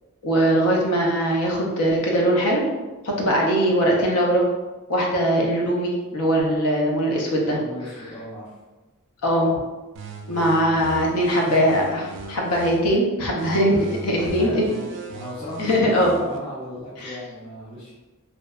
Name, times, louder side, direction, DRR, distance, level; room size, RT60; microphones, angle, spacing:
voice 1, 0.2-2.7 3.0-4.4 4.9-7.6 9.2-9.5 10.3-14.6 15.6-16.2 17.0-17.2, equal, 85° left, -1 dB, 0.5 m, -21 dB
voice 2, 7.4-8.5 14.1-14.7 15.1-17.9, equal, 25° left, -10 dB, 0.4 m, -36 dB
sound 1, 9.9-13.0 13.4-16.4, right 2 dB, 55° right, 0.3 m, -38 dB
2.6 x 2.1 x 2.3 m, 1.2 s
head